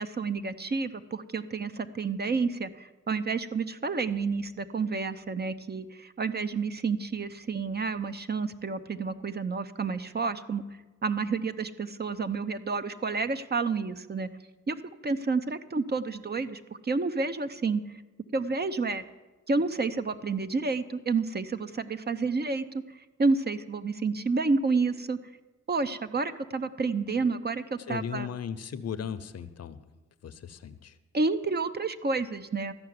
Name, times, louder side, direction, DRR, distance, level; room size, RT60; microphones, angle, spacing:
voice 1, 0.0-10.6 11.0-14.3 14.7-14.8 15.0-17.8 18.3-19.0 19.5-22.6 23.2-25.2 25.7-28.3 31.1-32.7, right 4 dB, 35° right, 11 dB, 0.7 m, -29 dB
voice 2, 27.9-29.8 30.2-31.0, left 7 dB, 60° left, 13 dB, 0.8 m, -37 dB
13.5 x 5.8 x 9.5 m, 1.2 s
cardioid pair, 75°, 29 cm